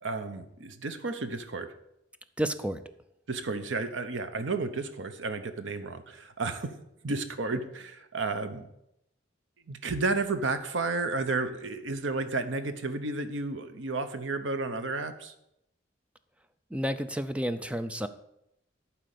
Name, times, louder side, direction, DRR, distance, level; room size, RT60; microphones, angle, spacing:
voice 1, 0.0-1.7 3.3-6.8 7.0-8.7 9.7-15.3, right 3 dB, 80° right, 9 dB, 0.9 m, -32 dB
voice 2, 2.4-2.8 16.7-18.1, equal, 5° right, 11 dB, 0.4 m, -31 dB
11.5 x 4.4 x 6.7 m, 0.82 s
head